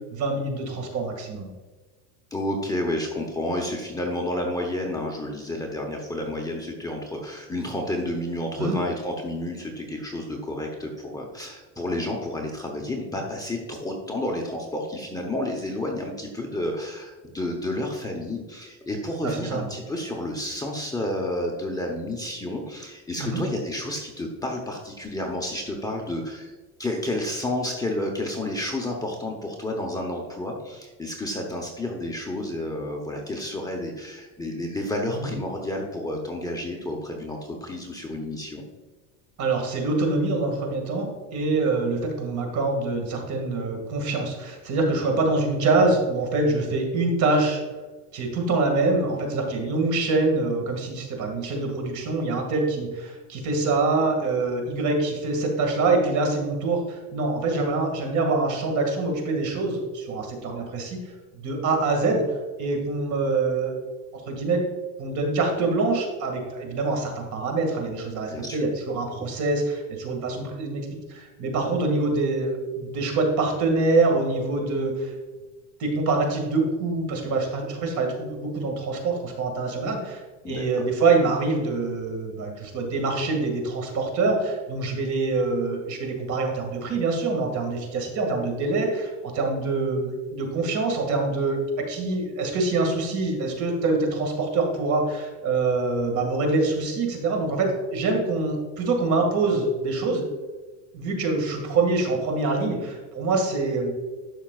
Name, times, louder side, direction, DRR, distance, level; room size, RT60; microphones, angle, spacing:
voice 1, 0.1-1.5 8.6-8.8 19.2-19.6 23.2-23.4 35.2-35.3 39.4-47.6 48.1-61.0 61.4-62.2 62.6-63.8 64.1-64.6 65.0-75.1 75.8-100.2 100.9-103.9, right 3 dB, 45° right, 3 dB, 2.1 m, -25 dB
voice 2, 2.3-26.5 26.8-38.6 68.3-68.7 80.4-80.9, left 1 dB, 10° left, 0 dB, 0.9 m, -30 dB
12.0 x 5.8 x 2.4 m, 1.3 s
cardioid pair, 135°, 40 cm